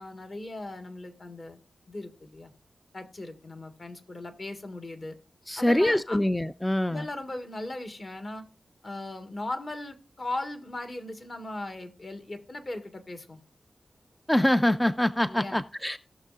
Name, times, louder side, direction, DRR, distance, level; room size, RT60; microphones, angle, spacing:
voice 1, 0.0-1.6 1.9-2.5 2.9-5.2 5.6-6.2 6.9-8.4 8.8-13.4 15.3-15.6, left 2 dB, 50° left, 1.6 m, -38 dB
voice 2, 5.5-7.1 14.3-16.0, left 1 dB, 10° left, 0.3 m, -24 dB
18.0 x 6.5 x 2.4 m
wide cardioid pair, 85°, 0 cm